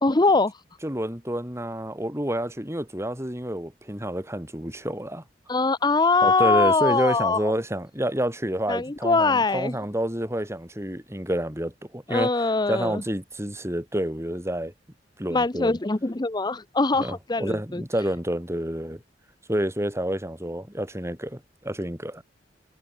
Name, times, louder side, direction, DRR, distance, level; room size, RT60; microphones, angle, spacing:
voice 1, 0.0-0.6 5.5-7.5 8.7-9.7 12.1-13.0 15.3-17.8, left 3 dB, 20° left, 0.7 m, -22 dB
voice 2, 0.8-5.2 6.2-12.3 12.7-14.7 15.2-15.8 17.0-19.0 19.5-22.2, right 1 dB, 15° right, 5.0 m, -29 dB
head